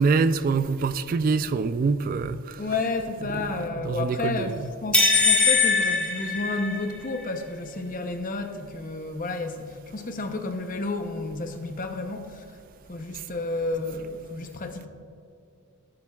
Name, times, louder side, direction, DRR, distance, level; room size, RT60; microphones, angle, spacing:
voice 1, 0.0-2.4 3.3-3.5 3.8-4.6, right 4 dB, 45° right, 13 dB, 0.3 m, -24 dB
voice 2, 2.6-12.4 12.9-14.9, left 3 dB, 40° left, 6 dB, 0.8 m, -31 dB
sound 1, 4.9-7.1, left 4 dB, 5° left, 1.6 m, -21 dB
17.5 x 8.8 x 2.3 m, 2.6 s
head